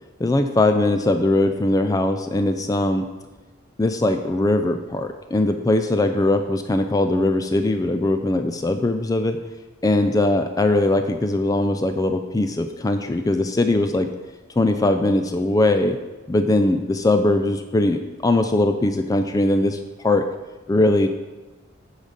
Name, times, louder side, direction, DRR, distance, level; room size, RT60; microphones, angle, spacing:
voice 1, 0.2-3.1 3.8-9.4 9.8-14.1 14.6-16.0 16.3-19.8 20.0-20.3 20.7-21.1, left 2 dB, 20° left, 7 dB, 0.3 m, -20 dB
8.5 x 4.0 x 6.4 m, 1.1 s
head